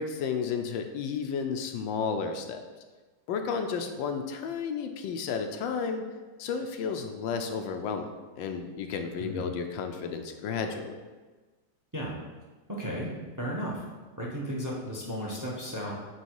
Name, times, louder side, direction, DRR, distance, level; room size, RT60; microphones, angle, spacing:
voice 1, 0.0-2.6 3.3-6.1 6.4-11.0, left 6 dB, 90° left, 6 dB, 1.4 m, -32 dB
voice 2, 12.7-13.8 14.2-15.9, equal, 15° right, -3 dB, 0.9 m, -34 dB
9.0 x 3.2 x 4.6 m, 1.3 s
omnidirectional pair, 2.1 m